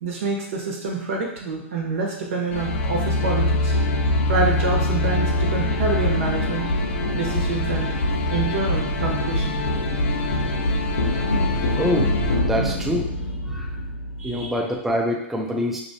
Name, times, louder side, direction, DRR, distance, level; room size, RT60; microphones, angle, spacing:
voice 1, 0.0-3.7 4.3-6.7 7.1-8.0 8.3-10.4 11.1-11.8 12.6-12.7 13.5-13.6 14.2-14.5, right 4 dB, 75° right, -1 dB, 1.4 m, -27 dB
sound 1, 2.5-14.5, left 1 dB, 80° left, 0.8 m, -23 dB
voice 2, 11.8-13.1 13.4-13.7 14.2-15.8, equal, 5° right, -1 dB, 0.5 m, -25 dB
4.9 x 3.2 x 2.7 m, 0.78 s
hypercardioid pair, 130°, 7 cm